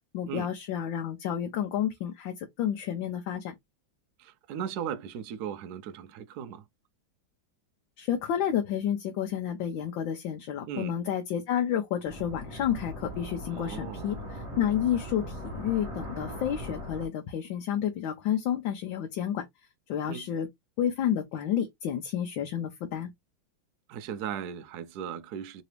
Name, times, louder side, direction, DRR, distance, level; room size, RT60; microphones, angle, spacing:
voice 1, 0.1-3.5 8.0-14.2 14.6-19.4 19.9-20.5 20.8-23.1, left 9 dB, 80° left, 1.4 m, -30 dB
voice 2, 4.2-6.6 10.7-11.0 13.5-14.2 20.1-20.3 23.9-25.6, right 8 dB, 70° right, 1.0 m, -37 dB
sound 1, 12.1-17.1, equal, 15° right, 1.5 m, -39 dB
3.9 x 2.7 x 3.2 m
omnidirectional pair, 2.1 m